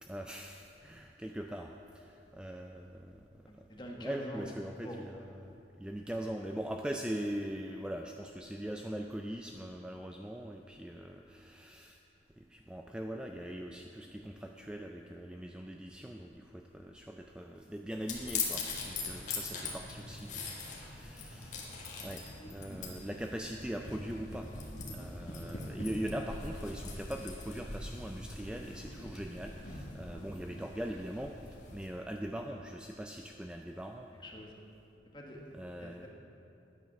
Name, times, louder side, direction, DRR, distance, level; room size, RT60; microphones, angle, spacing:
voice 1, 0.0-3.2 4.0-12.0 12.4-21.7 22.0-34.1 35.5-36.1, equal, 5° right, 3 dB, 0.3 m, -41 dB
voice 2, 3.5-4.5 4.8-5.0 34.2-34.5 35.1-36.1, equal, 25° left, 0 dB, 1.2 m, -46 dB
sound 1, 18.1-31.9, left 3 dB, 40° left, 1.7 m, -42 dB
11.0 x 9.1 x 5.9 m, 2.8 s
head